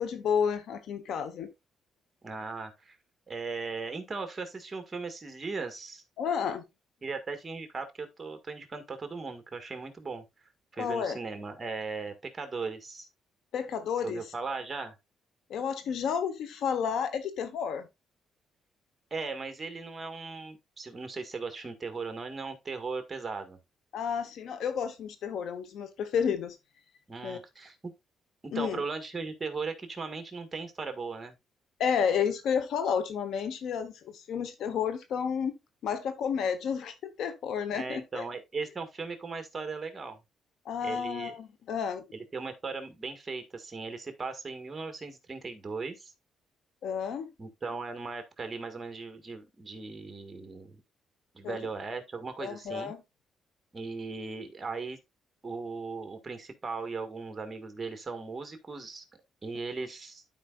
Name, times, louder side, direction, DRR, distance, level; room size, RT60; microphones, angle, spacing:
voice 1, 0.0-1.5 6.2-6.6 10.8-11.2 13.5-14.2 15.5-17.9 23.9-26.6 27.2-27.4 28.5-28.8 31.8-35.5 35.8-38.2 40.6-42.1 46.8-47.3 51.4-51.6 52.4-53.0, left 7 dB, 75° left, 1.1 m, -31 dB
voice 2, 2.2-3.0 3.3-6.0 7.0-10.2 10.7-13.1 14.0-15.0 19.1-23.6 27.1-27.9 28.4-31.3 37.7-40.2 40.8-41.4 42.1-46.1 47.4-50.8 51.3-52.9 53.7-55.0 55.4-59.1 59.4-60.2, right 4 dB, 25° right, 1.8 m, -38 dB
12.0 x 5.0 x 2.5 m
cardioid pair, 90°, 0 cm